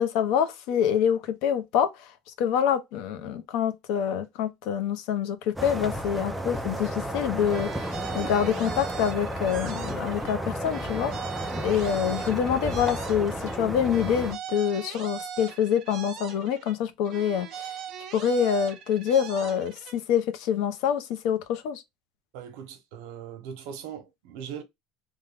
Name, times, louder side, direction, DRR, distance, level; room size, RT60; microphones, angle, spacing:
voice 1, 0.0-1.9 2.4-11.1 11.6-17.8 18.1-21.8, left 8 dB, 65° left, 0.7 m, -26 dB
sound 1, 5.6-14.4, equal, 5° right, 0.4 m, -33 dB
sound 2, 7.5-10.4 10.6-13.6 13.8-16.8 17.0-20.0, right 9 dB, 45° right, 0.7 m, -40 dB
voice 2, 22.3-24.6, right 8 dB, 75° right, 0.9 m, -40 dB
3.4 x 2.2 x 3.4 m
cardioid pair, 160°, 0 cm